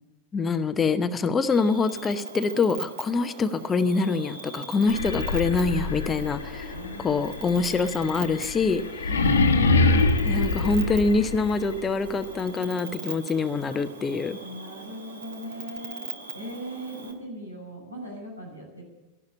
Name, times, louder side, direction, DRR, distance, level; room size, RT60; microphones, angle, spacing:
voice 1, 0.3-6.7 7.0-8.8 10.2-14.4, left 4 dB, 20° left, 10 dB, 0.8 m, -25 dB
Cricket, 1.5-17.1, right 3 dB, 70° right, 2.2 m, -40 dB
sound 1, 4.8-11.7, left 3 dB, 70° left, 1.2 m, -25 dB
voice 2, 6.7-7.2 9.0-9.9 13.7-13.8 14.4-18.8, equal, 85° right, -1 dB, 6.1 m, -39 dB
13.5 x 11.5 x 8.2 m, 1.1 s
figure-of-eight pair, 90°, 0 cm